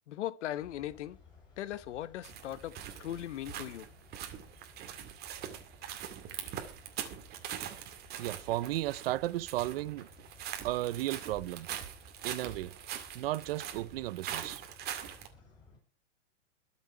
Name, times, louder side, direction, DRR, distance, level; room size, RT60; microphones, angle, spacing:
voice 1, 0.1-1.2 1.6-3.9, left 12 dB, 70° left, 1.2 m, -39 dB
sound 1, 0.6-15.8, left 3 dB, 10° left, 7.4 m, -59 dB
sound 2, 2.2-15.3, right 10 dB, 25° right, 2.3 m, -43 dB
voice 2, 8.2-10.1 10.6-11.7 12.2-12.7 13.1-14.6, right 15 dB, 50° right, 0.7 m, -34 dB
22.0 x 7.4 x 4.8 m
supercardioid pair, 155°, 37 cm